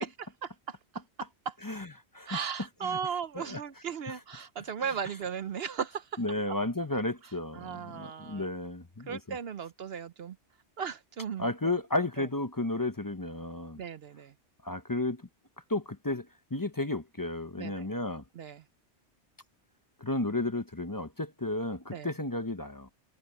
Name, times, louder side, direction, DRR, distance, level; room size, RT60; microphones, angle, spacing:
voice 1, 2.3-6.2 6.5-6.6 7.5-8.5 9.1-10.4 10.8-11.7 12.2-12.3 13.8-14.3 17.6-17.9 18.4-18.6 21.9-22.1, right 7 dB, 65° right, 0.9 m, -36 dB
voice 2, 6.2-9.4 11.4-13.8 14.6-15.2 15.7-16.3 16.5-18.2 20.0-22.9, left 2 dB, 20° left, 0.8 m, -33 dB
omnidirectional pair, 1.2 m